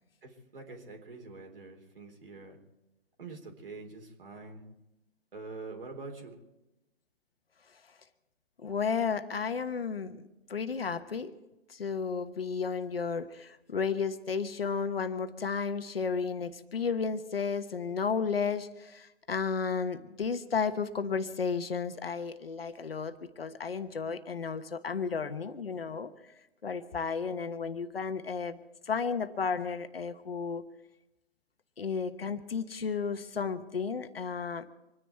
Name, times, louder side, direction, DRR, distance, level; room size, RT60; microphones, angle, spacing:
voice 1, 0.2-2.6 3.2-4.6 5.3-6.3, right 3 dB, 60° right, 3 dB, 3.7 m, -45 dB
voice 2, 8.6-10.2 10.5-11.4 11.7-26.1 26.6-28.6 28.9-30.6 31.8-34.7, left 5 dB, 65° left, 10 dB, 1.2 m, -33 dB
26.0 x 10.5 x 4.6 m, 0.96 s
figure-of-eight pair, 130°, 31 cm